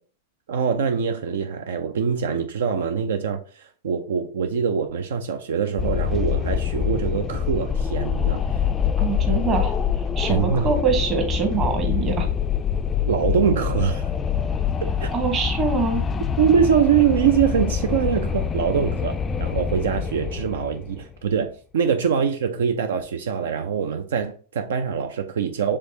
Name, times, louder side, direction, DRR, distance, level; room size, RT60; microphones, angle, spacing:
voice 1, 0.5-8.4 10.3-10.7 13.1-14.1 15.0-15.1 16.4-25.8, right 7 dB, 75° right, 0.5 m, -23 dB
Wind, 5.8-21.1, left 7 dB, 20° left, 0.3 m, -25 dB
voice 2, 9.0-9.8 10.2-12.3 15.1-16.0, right 5 dB, 30° right, 1.3 m, -24 dB
5.1 x 3.4 x 2.8 m
hypercardioid pair, 110°, 0 cm